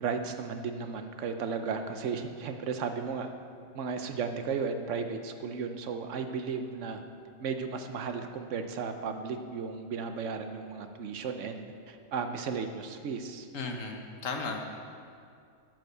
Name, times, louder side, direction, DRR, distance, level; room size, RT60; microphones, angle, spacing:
voice 1, 0.0-3.3 3.7-7.0 7.4-13.5, right 5 dB, 70° right, 7 dB, 1.1 m, -35 dB
voice 2, 13.5-14.6, left 3 dB, 85° left, 3 dB, 1.5 m, -35 dB
9.5 x 7.8 x 6.7 m, 2.4 s
omnidirectional pair, 1.3 m